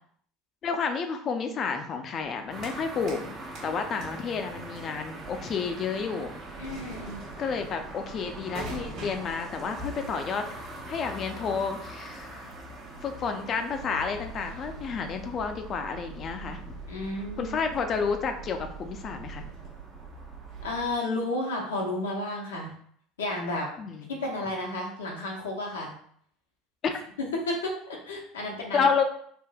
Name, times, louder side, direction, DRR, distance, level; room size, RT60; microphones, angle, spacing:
voice 1, 0.6-3.4 3.6-6.3 7.4-10.5 10.9-12.5 13.0-16.7 17.4-19.4 23.8-24.1 26.8-26.9 28.7-29.0, left 5 dB, 45° left, 6 dB, 0.4 m, -30 dB
sound 1, 2.2-3.3 3.5-21.0, right 3 dB, 60° right, 1.2 m, -44 dB
sound 2, 2.5-20.9, right 1 dB, 40° right, 0.7 m, -44 dB
voice 2, 6.6-7.2 16.9-17.6 20.6-22.7 23.2-23.7 24.2-25.9 27.5-28.9, left 1 dB, 90° left, -2 dB, 0.7 m, -32 dB
3.5 x 2.5 x 2.3 m, 0.63 s
hypercardioid pair, 75°, 0 cm